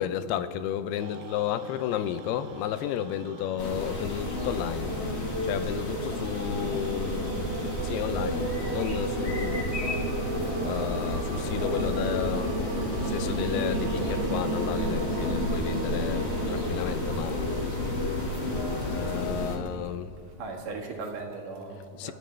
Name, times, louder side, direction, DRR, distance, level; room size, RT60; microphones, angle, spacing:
voice 1, 0.0-5.0 5.4-9.8 10.2-12.7 13.0-17.5 18.2-20.2 22.0-22.1, left 10 dB, 85° left, 2.6 m, -33 dB
sound 1, 1.0-19.2, right 8 dB, 85° right, 2.8 m, -38 dB
sound 2, 3.6-19.6, left 2 dB, 65° left, 0.6 m, -30 dB
voice 2, 20.2-22.1, right 3 dB, 60° right, 3.0 m, -38 dB
28.0 x 11.5 x 3.3 m
omnidirectional pair, 4.5 m